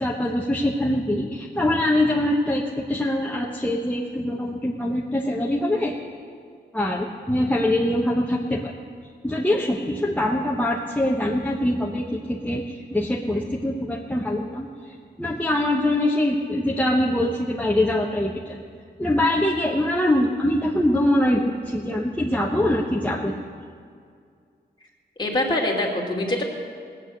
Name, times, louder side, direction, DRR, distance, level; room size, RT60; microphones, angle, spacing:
voice 1, 0.0-6.0 6.7-8.7 9.2-18.6 19.0-23.4, left 1 dB, 10° left, -3 dB, 1.1 m, -23 dB
voice 2, 25.2-26.4, left 1 dB, 25° left, -2 dB, 2.7 m, -24 dB
19.0 x 8.5 x 6.5 m, 2.2 s
wide cardioid pair, 95°, 18 cm